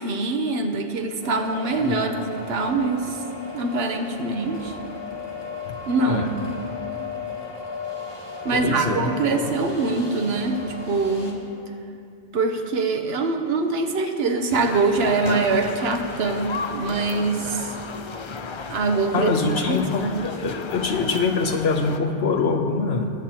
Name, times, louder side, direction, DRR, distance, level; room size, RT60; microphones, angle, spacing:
voice 1, 0.0-3.2 3.5-4.8 5.9-6.3 8.4-11.4 12.3-17.7 18.7-19.3 19.7-20.2, right 3 dB, 75° right, 5 dB, 1.1 m, -24 dB
sound 1, 1.2-11.3, left 4 dB, 25° left, 1.3 m, -36 dB
voice 2, 1.8-2.1 5.6-5.7 6.1-6.3 8.6-9.5 19.1-23.1, left 4 dB, 75° left, 4 dB, 1.1 m, -24 dB
sound 2, 14.5-22.0, left 4 dB, 50° left, 0.3 m, -34 dB
19.5 x 8.4 x 2.9 m, 2.5 s
omnidirectional pair, 1.1 m